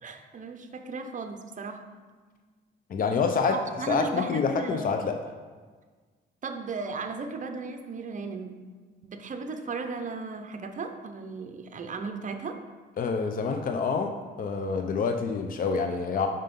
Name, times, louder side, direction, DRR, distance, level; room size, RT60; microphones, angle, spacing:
voice 1, 0.0-1.9 3.5-4.9 6.4-8.6 9.0-12.6, right 4 dB, 40° right, 6 dB, 0.8 m, -36 dB
voice 2, 2.9-3.6 3.9-5.1 13.0-14.1 14.4-16.3, left 5 dB, 45° left, 5 dB, 0.6 m, -27 dB
5.6 x 5.2 x 5.4 m, 1.4 s
cardioid pair, 90°, 20 cm